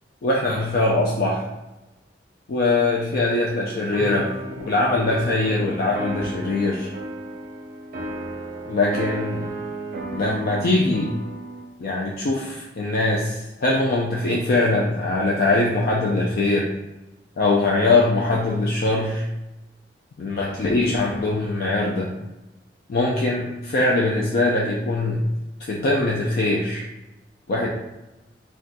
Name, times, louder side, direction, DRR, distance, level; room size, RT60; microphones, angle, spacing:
voice 1, 0.2-1.5 2.5-4.3 4.6-6.9 8.7-9.4 10.1-11.1 11.8-16.7 17.4-19.3 20.2-22.1 22.9-25.2 25.7-26.8 27.5-27.7, left 2 dB, 55° left, -3 dB, 0.4 m, -22 dB
sound 1, 3.9-11.7, right 1 dB, 55° right, 0.4 m, -33 dB
2.5 x 2.3 x 3.9 m, 1.0 s
head